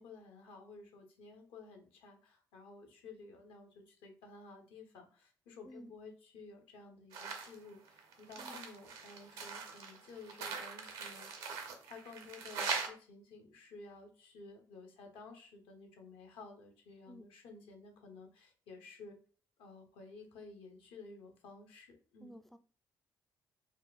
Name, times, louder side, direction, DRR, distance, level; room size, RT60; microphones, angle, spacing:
voice 1, 0.0-11.3 11.6-19.2 19.6-22.4, left 3 dB, 65° left, 0.7 m, -53 dB
sound 1, 7.1-7.6 7.9-12.9, right 5 dB, 70° right, 0.6 m, -41 dB
voice 2, 22.2-22.6, equal, 5° left, 0.3 m, -52 dB
4.7 x 2.1 x 2.2 m
figure-of-eight pair, 40°, 10 cm